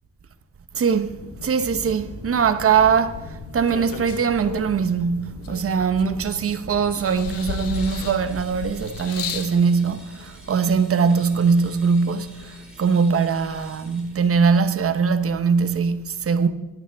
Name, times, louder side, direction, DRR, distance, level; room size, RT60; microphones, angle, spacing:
voice 1, 0.7-16.5, right 6 dB, 45° right, 0.8 m, -21 dB
sound 1, 1.1-8.4, left 2 dB, 45° left, 3.3 m, -40 dB
sound 2, 3.1-4.9 5.4-6.5 6.9-9.6 10.5-10.6, left 8 dB, 80° left, 1.0 m, -34 dB
sound 3, 7.7-14.3, right 1 dB, 5° right, 4.5 m, -47 dB
26.0 x 9.7 x 3.5 m
wide cardioid pair, 135°, 33 cm